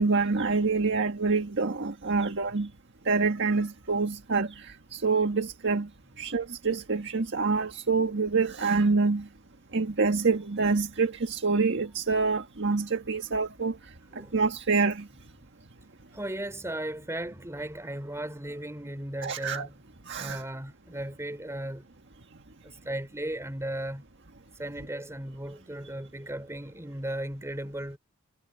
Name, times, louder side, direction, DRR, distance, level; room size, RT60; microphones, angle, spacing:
voice 1, 0.0-2.7 3.0-5.9 6.2-9.3 9.7-13.8 14.1-15.1 19.2-19.7 20.1-20.4, right 4 dB, 55° right, 1.6 m, -26 dB
voice 2, 16.1-19.7 20.2-21.8 22.6-24.0 24.5-28.0, right 1 dB, 15° right, 3.9 m, -36 dB
head